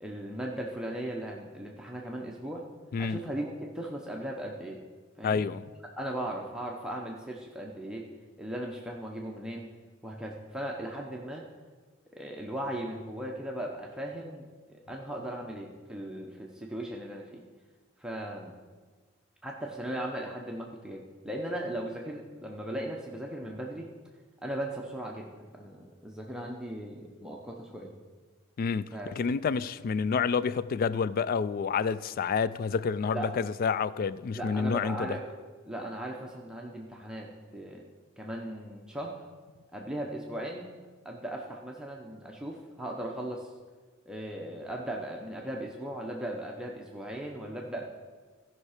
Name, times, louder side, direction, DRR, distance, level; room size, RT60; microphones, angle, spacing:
voice 1, 0.0-2.6 3.0-4.8 5.2-5.5 6.0-8.1 8.4-9.7 10.0-11.4 12.1-17.4 18.0-18.5 19.4-23.9 24.4-25.3 25.5-27.9 28.9-29.1 33.1-33.3 34.3-35.2 35.6-37.8 38.2-39.2 39.7-40.7 41.0-43.5 44.1-47.8, right 1 dB, 5° right, 0.7 m, -37 dB
voice 2, 5.2-5.6 28.6-35.2, left 5 dB, 45° left, 0.3 m, -29 dB
14.5 x 5.5 x 4.9 m
head